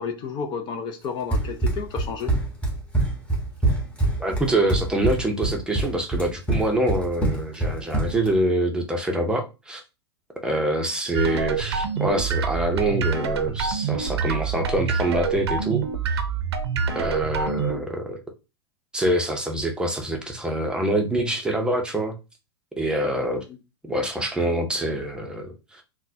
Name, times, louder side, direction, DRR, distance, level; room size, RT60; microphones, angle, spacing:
voice 1, 0.0-2.3, left 6 dB, 35° left, 0.5 m, -31 dB
Run, 1.3-8.3, right 2 dB, 10° left, 1.2 m, -24 dB
voice 2, 4.2-9.8 10.4-16.2 16.9-18.2 18.9-22.1 22.8-23.4 23.8-25.8, right 1 dB, 5° right, 0.6 m, -25 dB
sound 1, 11.1-17.8, right 6 dB, 80° right, 0.6 m, -26 dB
3.8 x 2.1 x 2.7 m
hypercardioid pair, 115°, 14 cm